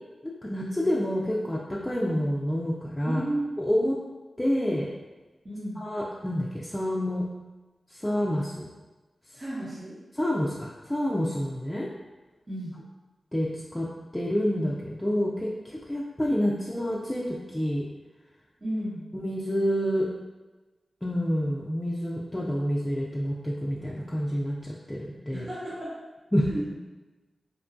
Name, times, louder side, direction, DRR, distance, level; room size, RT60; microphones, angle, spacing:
voice 1, 0.2-3.2 3.6-3.9 4.4-4.9 5.8-7.3 7.9-8.7 10.2-11.9 13.3-13.9 14.1-17.9 19.1-20.1 21.0-25.5 26.3-26.5, equal, 15° left, -5 dB, 0.3 m, -28 dB
voice 2, 3.1-3.5 5.4-5.8 9.3-9.9 12.5-12.8 18.6-19.1 25.3-26.0 26.5-26.6, right 1 dB, 35° right, -10 dB, 0.8 m, -33 dB
2.8 x 2.2 x 2.5 m, 1.2 s
cardioid pair, 65°, 0 cm